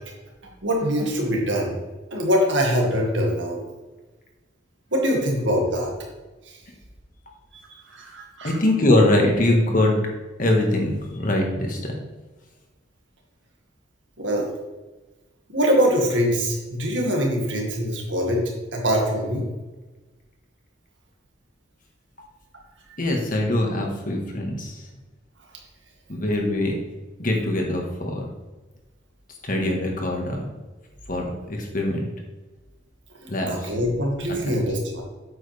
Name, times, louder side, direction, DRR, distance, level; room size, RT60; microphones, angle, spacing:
voice 1, 0.6-1.8 2.1-3.6 4.9-5.9 6.5-6.6 7.9-8.5 14.2-14.5 15.5-18.4 18.7-19.5 33.5-35.0, equal, 70° right, 0 dB, 2.0 m, -23 dB
voice 2, 8.4-10.0 10.4-12.0 23.0-24.8 26.1-26.8 27.2-28.3 29.4-30.5 31.1-32.1 33.3-33.7 34.5-34.6, left 1 dB, 45° left, 1 dB, 1.7 m, -23 dB
8.6 x 7.9 x 3.5 m, 1.2 s
head